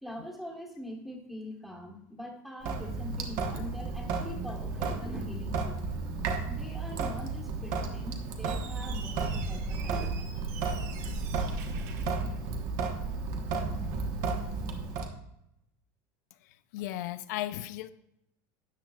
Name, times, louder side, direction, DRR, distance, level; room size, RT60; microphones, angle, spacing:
voice 1, 0.0-5.8 6.5-10.4, left 1 dB, ahead, 0 dB, 1.3 m, -43 dB
Sink (filling or washing) / Drip, 2.6-15.1, right 4 dB, 40° right, 1.1 m, -33 dB
Squeak, 8.3-13.0, right 3 dB, 65° right, 1.4 m, -45 dB
voice 2, 16.7-17.9, left 14 dB, 75° left, 12 dB, 0.5 m, -35 dB
13.0 x 8.9 x 2.4 m, 0.81 s
cardioid pair, 175°, 9 cm